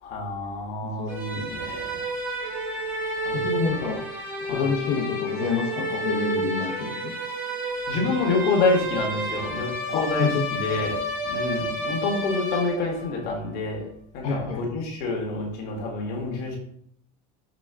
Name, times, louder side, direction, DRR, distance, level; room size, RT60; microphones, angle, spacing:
voice 1, 0.0-2.0 3.2-3.4 4.4-4.7 7.9-11.0 11.2-13.9 14.1-16.6, left 3 dB, 55° left, 0 dB, 1.2 m, -27 dB
voice 2, 1.0-1.5 3.3-4.0 4.5-7.1 9.9-10.4 14.2-14.6, left 5 dB, 75° left, -3 dB, 0.9 m, -28 dB
sound 1, 1.1-13.2, equal, 10° right, 1.2 m, -30 dB
5.2 x 2.3 x 3.3 m, 0.67 s
supercardioid pair, 130°, 19 cm